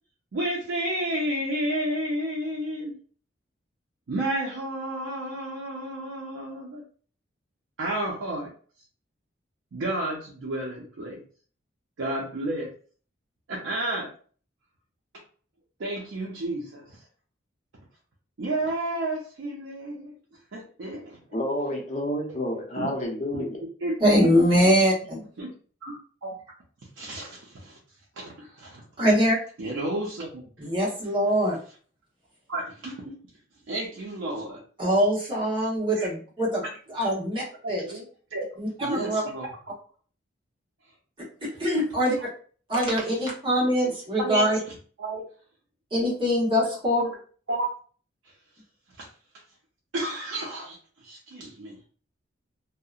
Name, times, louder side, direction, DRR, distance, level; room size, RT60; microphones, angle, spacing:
voice 1, 0.3-3.0 4.1-6.8 7.8-8.5 9.7-11.2 12.0-12.7 13.5-14.1 15.8-16.9 18.4-20.1 20.5-21.2 22.8-22.9 23.3-23.4 23.8-23.9 24.2-24.3 25.4-25.5 25.8-26.3 27.0-27.8 28.2-28.8 29.6-30.5 32.5-33.2 33.7-34.6 36.0-36.1 37.6-38.0 38.3-38.5 38.8-39.5 42.9-43.2 44.2-44.5 45.0-45.2 46.9-47.1 47.5-47.7 49.0-49.1 49.9-51.8, right 1 dB, 80° right, -3 dB, 0.5 m, -31 dB
voice 2, 21.3-23.6, left 1 dB, 35° left, 0 dB, 0.6 m, -29 dB
voice 3, 24.0-25.2 29.0-29.4 30.6-31.6 34.8-36.6 36.9-37.8 38.6-39.2 41.4-42.2 42.7-44.6 45.9-47.0, equal, 25° right, -5 dB, 0.9 m, -23 dB
2.7 x 2.1 x 2.3 m, 0.43 s
head